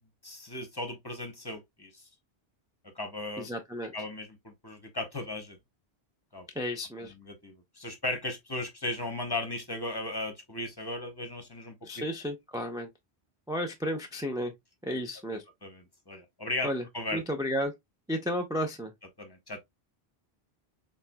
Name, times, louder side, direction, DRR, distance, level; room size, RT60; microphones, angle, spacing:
voice 1, 0.2-2.0 2.9-3.5 3.9-5.6 6.3-6.5 7.0-12.0 15.6-17.2 19.2-19.6, left 2 dB, 25° left, 0.8 m, -36 dB
voice 2, 3.4-3.9 6.5-7.1 11.8-12.9 13.5-14.5 14.8-15.4 16.6-16.8 17.1-17.7 18.1-18.9, equal, 5° right, 0.4 m, -32 dB
4.3 x 3.7 x 2.2 m
omnidirectional pair, 1.1 m